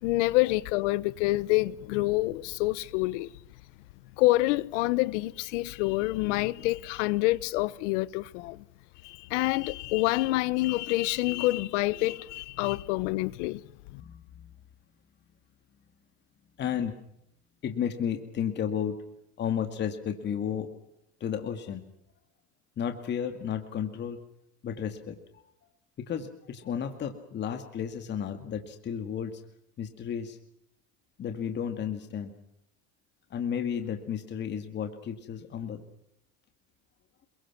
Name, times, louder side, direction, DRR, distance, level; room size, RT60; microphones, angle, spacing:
voice 1, 0.0-3.3 4.2-8.6 9.0-13.6 13.9-14.0, left 19 dB, 80° left, 1.3 m, -27 dB
voice 2, 14.0-14.5 16.6-16.9 17.6-19.0 19.4-20.7 21.2-21.8 22.8-24.2 24.6-25.2 26.0-29.4 29.8-30.4 31.2-32.3 33.3-35.8, left 8 dB, 30° left, 2.2 m, -33 dB
29.5 x 22.0 x 6.1 m
cardioid pair, 145°, 36 cm